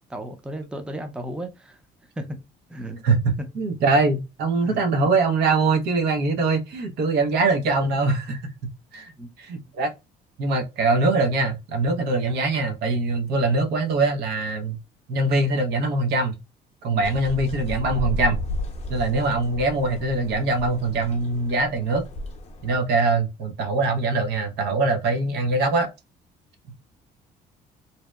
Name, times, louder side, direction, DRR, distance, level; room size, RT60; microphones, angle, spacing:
voice 1, 0.1-1.8 2.2-2.4 2.7-3.0 3.5-3.6 4.6-4.8 9.2-9.3, right 1 dB, 5° right, 0.5 m, -34 dB
voice 2, 3.0-9.1 9.4-9.9 10.4-14.8 15.1-16.4 16.8-18.4 18.9-22.0 22.6-25.9, right 3 dB, 75° right, 0.7 m, -23 dB
sound 1, 17.0-22.8, left 1 dB, 40° left, 0.6 m, -33 dB
2.7 x 2.0 x 2.2 m
cardioid pair, 110°, 17 cm